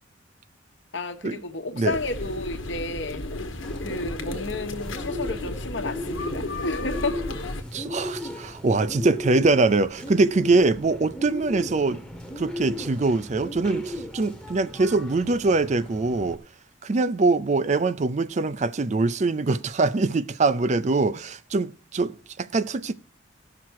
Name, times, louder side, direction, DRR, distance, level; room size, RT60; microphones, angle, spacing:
voice 1, 0.9-3.3 3.8-7.2, left 3 dB, 65° left, 1.1 m, -31 dB
sound 1, 1.9-7.6, left 2 dB, 85° left, 1.2 m, -33 dB
Bird, 3.6-16.4, left 1 dB, 5° left, 0.9 m, -36 dB
voice 2, 7.7-12.0 12.4-16.4 16.8-22.9, right 3 dB, 35° right, 0.4 m, -23 dB
15.5 x 5.9 x 4.6 m
head